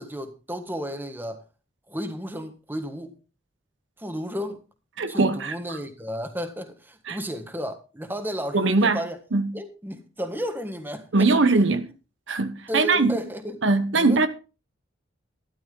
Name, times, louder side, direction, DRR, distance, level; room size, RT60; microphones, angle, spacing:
voice 1, 0.0-1.4 1.9-3.1 4.0-4.6 5.1-9.2 9.5-11.3 12.7-13.6 13.9-14.3, equal, 10° right, 1.5 m, -33 dB
voice 2, 5.0-5.5 7.1-7.2 8.5-9.0 9.3-9.6 11.1-11.9 12.3-13.2 13.6-14.3, right 3 dB, 70° right, 1.0 m, -21 dB
12.5 x 11.5 x 3.8 m
head